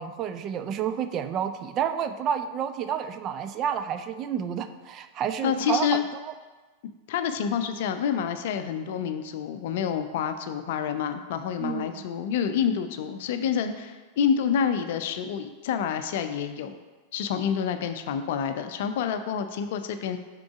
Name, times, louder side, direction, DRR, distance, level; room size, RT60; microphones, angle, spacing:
voice 1, 0.0-6.3 11.6-11.9, right 8 dB, 35° right, 9 dB, 0.3 m, -30 dB
voice 2, 5.4-6.0 7.1-16.8 17.1-20.2, left 8 dB, 55° left, 9 dB, 0.4 m, -28 dB
6.1 x 3.7 x 4.7 m, 1.3 s
figure-of-eight pair, 90°, 0 cm